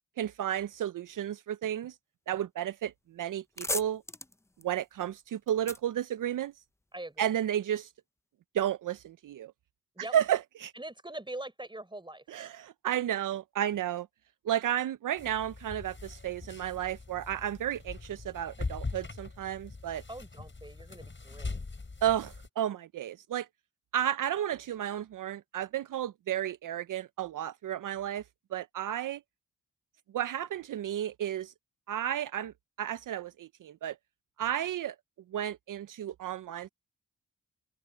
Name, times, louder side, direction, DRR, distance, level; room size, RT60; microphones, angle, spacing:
voice 1, 0.2-2.0 2.3-4.0 4.6-6.5 7.2-7.9 8.5-9.5 10.1-10.7 12.3-14.1 14.5-20.0 22.0-23.5 23.9-28.2 28.5-29.2 30.1-31.5 31.9-34.0 34.4-34.9 35.3-36.7, right 10 dB, 70° right, 0.5 m, -32 dB
sound 1, 2.8-3.0 3.3-6.9, left 2 dB, 10° left, 0.5 m, -39 dB
voice 2, 6.9-7.3 9.9-10.1 10.7-12.2 20.1-21.6, right 1 dB, 15° right, 4.3 m, -43 dB
sound 2, 15.2-22.5, left 3 dB, 35° left, 5.9 m, -41 dB
open air
cardioid pair, 65°, 33 cm